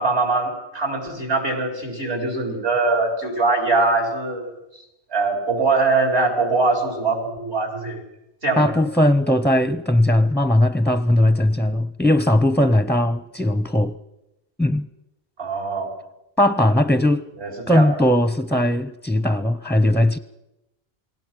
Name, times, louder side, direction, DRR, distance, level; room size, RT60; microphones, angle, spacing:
voice 1, 0.0-4.5 5.1-8.0 8.4-8.8 15.4-15.9 17.4-17.9, right 3 dB, 85° right, 4.9 m, -22 dB
voice 2, 8.6-14.0 14.6-14.9 16.4-17.3 17.7-20.2, left 1 dB, ahead, 0.4 m, -18 dB
28.0 x 19.5 x 6.1 m
omnidirectional pair, 1.1 m